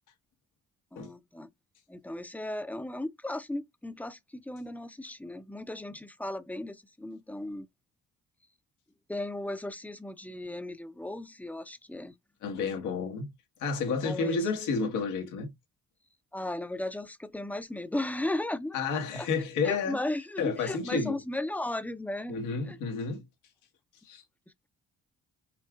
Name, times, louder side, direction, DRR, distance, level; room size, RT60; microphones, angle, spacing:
voice 1, 0.9-1.5 1.9-7.7 9.1-12.1 14.0-14.4 16.3-19.3 19.6-22.4 22.6-22.8, left 1 dB, 5° left, 0.5 m, -36 dB
voice 2, 12.4-13.3 13.6-15.5 18.7-20.0 20.4-21.2 22.3-23.2 24.0-24.2, left 4 dB, 85° left, 1.4 m, -31 dB
5.5 x 2.4 x 2.3 m
cardioid pair, 90°, 30 cm